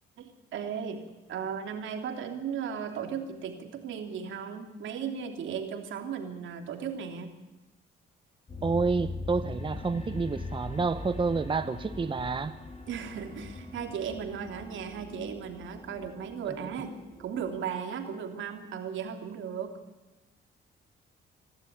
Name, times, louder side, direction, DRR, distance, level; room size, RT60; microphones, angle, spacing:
voice 1, 0.2-7.3 12.9-19.7, right 7 dB, 75° right, 5 dB, 3.2 m, -36 dB
sound 1, 8.5-17.7, left 3 dB, 35° left, 3.9 m, -41 dB
voice 2, 8.6-12.5 16.5-16.6, right 4 dB, 25° right, 11 dB, 0.8 m, -29 dB
26.0 x 12.0 x 9.5 m, 1.1 s
cardioid pair, 90°, 20 cm